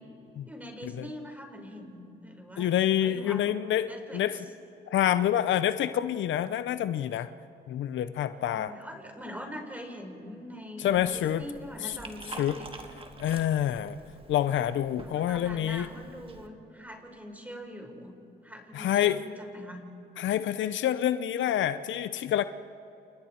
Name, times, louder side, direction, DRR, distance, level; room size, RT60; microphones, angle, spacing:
voice 1, 0.5-3.5 3.8-4.3 8.3-12.7 15.0-18.1 18.4-19.8, equal, 10° right, 3 dB, 4.3 m, -43 dB
voice 2, 2.6-4.4 4.9-7.3 7.7-8.7 10.8-11.4 11.8-12.0 12.4-12.6 13.2-14.0 14.3-15.9 18.7-19.2 20.2-22.4, left 11 dB, 70° left, 12 dB, 0.7 m, -27 dB
Liquid, 10.9-16.5, right 3 dB, 25° right, 1.9 m, -47 dB
29.5 x 29.5 x 4.4 m, 3.0 s
cardioid pair, 90°, 20 cm